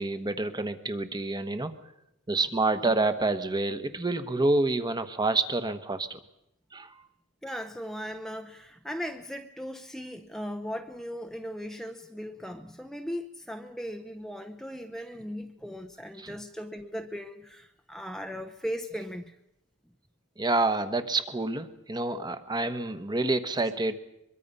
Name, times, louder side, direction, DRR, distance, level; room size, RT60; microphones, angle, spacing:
voice 1, 0.0-1.7 2.3-6.2 6.7-6.9 16.2-16.4 20.4-24.0, right 2 dB, 20° right, 11 dB, 1.2 m, -28 dB
voice 2, 7.4-19.4, equal, ahead, 6 dB, 0.7 m, -38 dB
23.0 x 23.0 x 5.5 m, 0.85 s
head